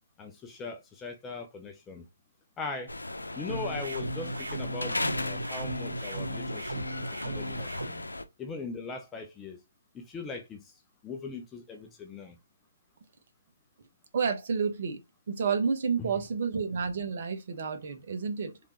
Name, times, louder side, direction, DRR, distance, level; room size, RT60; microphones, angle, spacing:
voice 1, 0.2-2.1 2.6-2.9 3.3-6.9 7.2-8.0 8.4-9.6 9.9-12.4 16.0-16.1, left 4 dB, 10° left, 0.6 m, -40 dB
sound 1, 2.9-8.2, left 2 dB, 90° left, 0.6 m, -36 dB
sound 2, 3.5-7.9, right 1 dB, 80° right, 1.3 m, -36 dB
voice 2, 14.1-15.0 15.3-18.6, right 5 dB, 45° right, 1.1 m, -30 dB
3.5 x 3.4 x 2.9 m
figure-of-eight pair, 145°, 0 cm